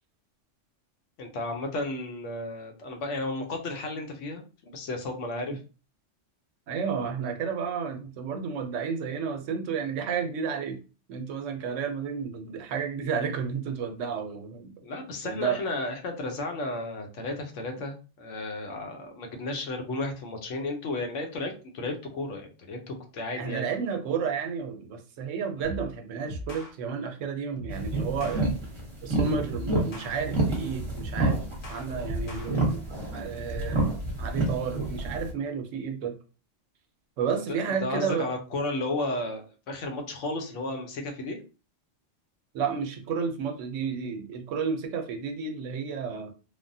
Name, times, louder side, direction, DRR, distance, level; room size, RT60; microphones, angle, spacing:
voice 1, 1.2-5.6 14.8-23.7 37.5-41.4, left 2 dB, 75° left, 3 dB, 1.0 m, -33 dB
voice 2, 6.7-10.8 11.1-14.7 15.2-15.6 23.4-28.5 29.0-31.4 31.7-32.8 33.1-33.9 34.2-36.1 37.2-38.3 42.5-46.3, right 6 dB, 80° right, 5 dB, 1.0 m, -31 dB
sound 1, 25.6-25.9 26.3-26.7 27.6-28.4 29.3-30.7 31.0-32.5, equal, 55° left, 0.7 m, -39 dB
sound 2, 27.7-35.3, right 2 dB, 25° right, 0.9 m, -29 dB
3.3 x 2.1 x 2.6 m, 0.34 s
omnidirectional pair, 1.3 m